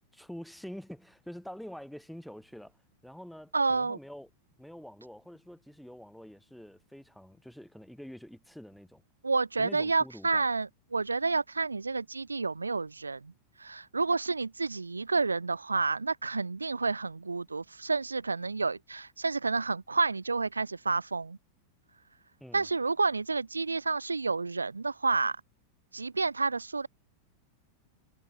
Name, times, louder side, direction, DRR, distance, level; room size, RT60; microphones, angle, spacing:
voice 1, 0.1-2.8 3.0-4.3 4.6-9.0 9.6-10.4 22.4-22.7, equal, ahead, 6.7 m, -46 dB
voice 2, 3.5-4.0 9.2-13.3 13.6-21.4 22.5-25.4 25.9-26.9, right 4 dB, 80° right, 0.7 m, -30 dB
figure-of-eight pair, 90°, 0 cm